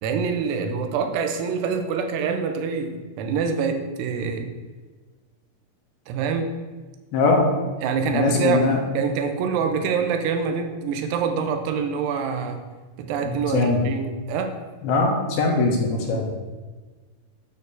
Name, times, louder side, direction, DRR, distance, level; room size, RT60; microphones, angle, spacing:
voice 1, 0.0-4.5 6.1-6.5 7.8-8.6 8.9-12.6 13.0-14.6 16.1-16.3, right 6 dB, 90° right, 6 dB, 2.9 m, -25 dB
voice 2, 7.1-7.5 8.1-8.8 13.3-13.8 14.8-16.3, left 3 dB, 70° left, 1 dB, 3.0 m, -21 dB
9.0 x 4.1 x 6.7 m, 1.3 s
omnidirectional pair, 4.8 m